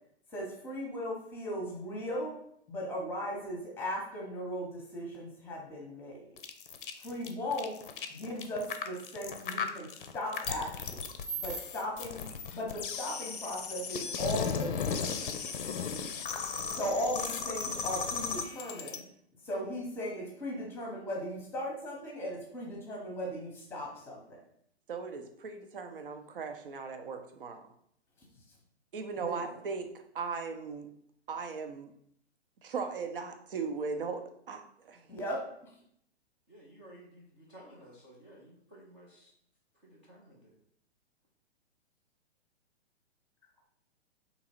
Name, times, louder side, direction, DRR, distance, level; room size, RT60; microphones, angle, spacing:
voice 1, 0.3-2.3 2.7-6.3 7.0-7.7 8.1-9.9 10.1-11.0 11.4-12.3 12.5-15.3 16.7-19.0 19.4-24.4 29.2-29.5 35.1-35.4, equal, 5° left, -2 dB, 0.9 m, -37 dB
sound 1, 6.4-19.0, left 5 dB, 50° left, 0.6 m, -36 dB
voice 2, 24.9-27.6 28.9-29.9 30.1-30.9 31.3-31.9 32.6-35.1, right 5 dB, 55° right, 6 dB, 0.7 m, -38 dB
voice 3, 36.5-39.3 39.8-40.5, right 1 dB, 10° right, -7 dB, 0.3 m, -55 dB
3.8 x 2.9 x 4.4 m, 0.69 s
figure-of-eight pair, 120°, 34 cm